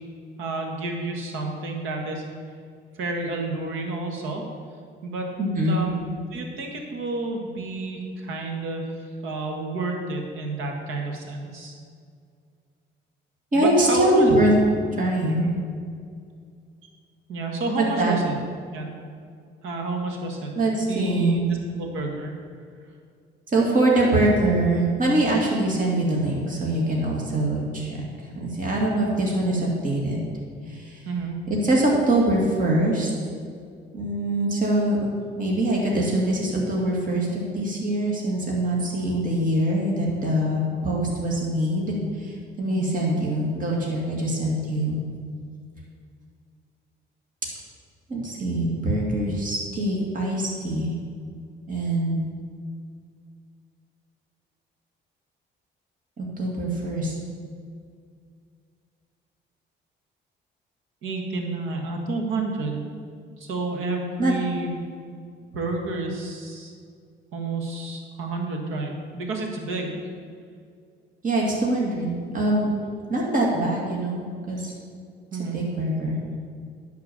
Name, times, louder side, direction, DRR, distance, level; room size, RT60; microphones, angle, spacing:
voice 1, 0.4-2.2 3.0-4.4 5.0-5.3 5.7-11.7 13.5-14.3 15.3-15.5 17.3-18.3 18.7-18.9 19.6-20.5 20.9-22.3 31.1-31.3 42.7-42.9 61.0-62.8 63.4-64.8 65.5-66.7 67.3-69.9 75.3-75.6, right 3 dB, 90° right, 2 dB, 1.7 m, -30 dB
voice 2, 5.4-5.8 13.5-14.5 15.0-15.5 17.8-18.1 20.6-21.4 23.5-30.2 30.7-31.0 31.6-33.1 33.9-35.1 35.3-45.0 48.1-50.9 51.7-52.2 56.2-57.1 64.2-64.3 71.2-72.7 73.1-74.2 74.5-74.7 75.5-76.1, right 1 dB, 45° right, -3 dB, 2.4 m, -23 dB
11.0 x 4.7 x 7.3 m, 2.2 s
cardioid pair, 90°, 20 cm